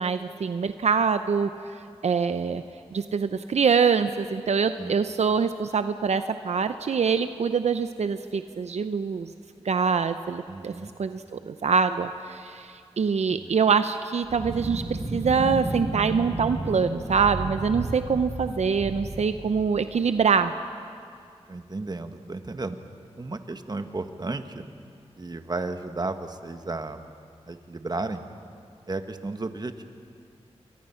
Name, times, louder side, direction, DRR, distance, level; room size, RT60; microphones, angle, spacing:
voice 1, 0.0-1.5 2.0-2.6 2.9-9.3 9.6-10.7 11.0-20.5, right 6 dB, 75° right, 10 dB, 0.7 m, -24 dB
voice 2, 10.5-10.9 13.3-13.5 21.5-22.8 23.2-24.7 25.2-27.1 27.5-28.2 28.9-29.8, right 3 dB, 35° right, 8 dB, 1.4 m, -33 dB
sound 1, 14.2-20.2, right 2 dB, 60° right, 2.9 m, -33 dB
28.0 x 23.0 x 5.8 m, 2.3 s
wide cardioid pair, 65°, 11 cm